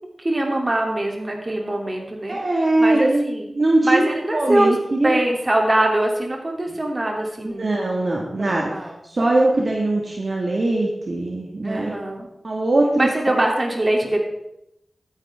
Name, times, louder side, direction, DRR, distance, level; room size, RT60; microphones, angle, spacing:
voice 1, 0.2-3.5 3.8-4.7 5.0-7.7 8.4-8.9 9.4-9.7 11.6-12.3 13.0-14.2, right 1 dB, 35° right, 1 dB, 3.0 m, -23 dB
voice 2, 2.3-3.2 3.5-5.1 7.4-8.7 9.0-11.9 12.4-13.1 13.3-13.4, right 2 dB, 60° right, -2 dB, 1.9 m, -21 dB
13.0 x 10.0 x 3.6 m, 0.82 s
cardioid pair, 45°, 0 cm